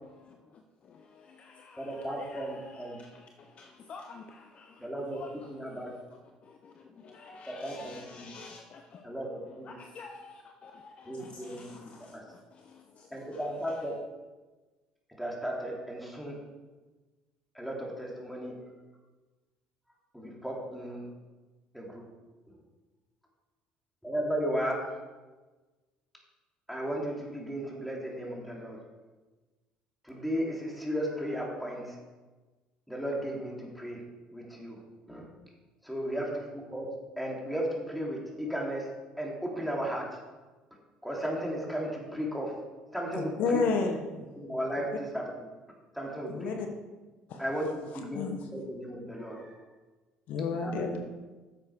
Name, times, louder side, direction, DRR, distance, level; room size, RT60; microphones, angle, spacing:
voice 1, 0.0-14.0, left 4 dB, 45° left, 0.8 m, -50 dB
voice 2, 1.8-3.0 4.8-5.2 5.5-5.9 7.6-8.3 9.0-9.7 11.0-12.2 13.1-13.9 15.2-16.4 17.5-18.6 20.1-21.1 21.7-22.0 24.0-25.0 26.7-28.8 30.0-31.9 32.9-34.0 34.3-34.8 35.1-35.2 35.9-36.8 37.2-40.2 41.0-42.6 42.9-43.6 44.4-45.3 45.9-46.5 47.4-48.2 48.5-49.5 50.6-50.8, equal, ahead, 3.0 m, -35 dB
voice 3, 43.1-44.3 46.3-46.7 47.3-47.4 47.9-48.5 50.3-51.0, left 4 dB, 65° left, 1.3 m, -30 dB
10.0 x 7.4 x 4.8 m
supercardioid pair, 95°, 3 cm